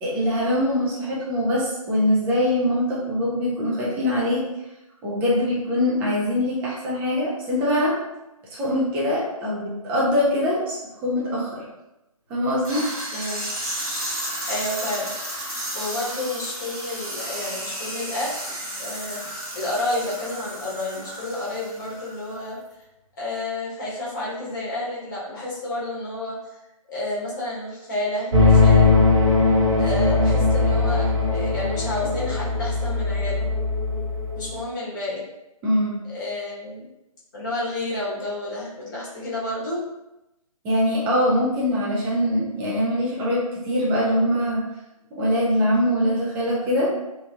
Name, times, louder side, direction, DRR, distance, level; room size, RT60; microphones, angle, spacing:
voice 1, 0.0-4.4 5.0-7.9 8.5-10.8 11.0-11.6 12.3-12.8 35.6-36.0 40.6-44.6 45.1-46.9, left 1 dB, 10° right, -7 dB, 0.5 m, -23 dB
sound 1, 12.6-22.4, right 1 dB, 75° right, 1.4 m, -33 dB
voice 2, 13.1-13.4 14.5-15.1 15.7-18.3 18.7-22.6 23.2-26.5 26.9-28.9 29.8-33.5 34.3-35.3 36.0-36.9 37.3-39.8, left 2 dB, 35° left, -7 dB, 1.1 m, -30 dB
sound 2, 28.3-34.6, left 3 dB, 50° right, 0.8 m, -19 dB
3.1 x 2.4 x 2.4 m, 0.93 s
figure-of-eight pair, 140°, 19 cm